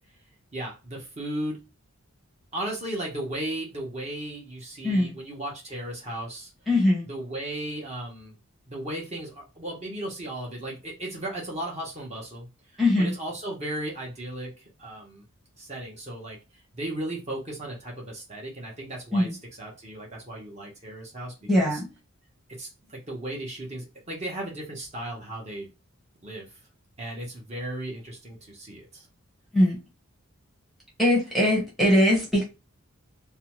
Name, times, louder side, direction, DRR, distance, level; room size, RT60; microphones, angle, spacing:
voice 1, 0.5-1.6 2.5-6.5 7.1-8.4 8.7-12.5 13.0-14.5 14.8-15.2 15.6-16.4 16.7-19.3 19.6-21.7 22.6-25.7 26.2-26.5 27.0-29.1, right 1 dB, 30° right, -2 dB, 0.9 m, -35 dB
voice 2, 4.8-5.1 6.7-7.1 12.8-13.1 19.1-19.3 21.5-21.9 29.5-29.8 31.0-32.4, left 1 dB, ahead, -3 dB, 0.9 m, -21 dB
2.6 x 2.2 x 3.0 m, 0.28 s
head